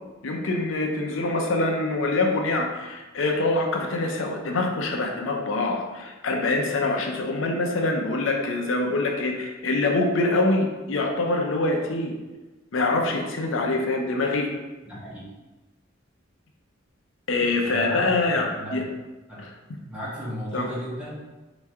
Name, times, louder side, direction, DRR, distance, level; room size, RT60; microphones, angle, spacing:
voice 1, 0.2-12.1 12.7-14.5 17.3-18.8 19.4-19.5 20.5-20.7, left 2 dB, 80° left, 2 dB, 0.6 m, -25 dB
voice 2, 14.8-15.2 17.6-18.9 19.3-19.4 19.9-21.1, equal, 5° right, -8 dB, 1.4 m, -35 dB
4.3 x 3.0 x 3.5 m, 1.2 s
head